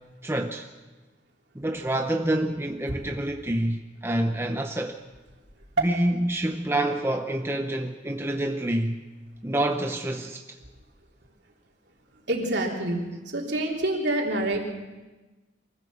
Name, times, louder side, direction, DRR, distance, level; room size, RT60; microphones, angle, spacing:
voice 1, 0.2-0.7 1.5-5.0 5.8-9.0 9.4-10.6, right 1 dB, 15° right, 0.7 m, -27 dB
voice 2, 12.3-14.6, right 1 dB, 60° right, 3.4 m, -26 dB
23.5 x 15.5 x 7.2 m
head